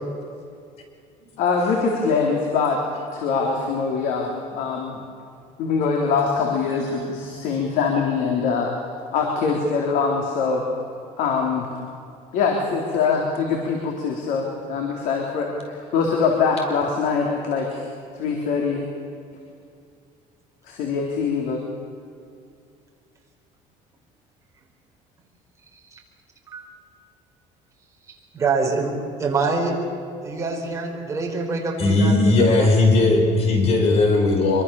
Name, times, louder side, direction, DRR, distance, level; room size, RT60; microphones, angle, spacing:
voice 1, 1.4-2.8 3.1-5.0 5.6-8.7 9.1-10.6 11.2-11.7 12.3-17.8 18.1-18.9 20.7-21.6, left 5 dB, 70° left, 0 dB, 3.7 m, -23 dB
voice 2, 28.1-29.8 30.2-32.2 32.6-32.7, right 4 dB, 20° right, 0 dB, 4.9 m, -25 dB
voice 3, 31.8-34.6, left 2 dB, 45° left, 3 dB, 5.4 m, -17 dB
25.5 x 24.0 x 7.2 m, 2.4 s
cardioid pair, 150°, 15 cm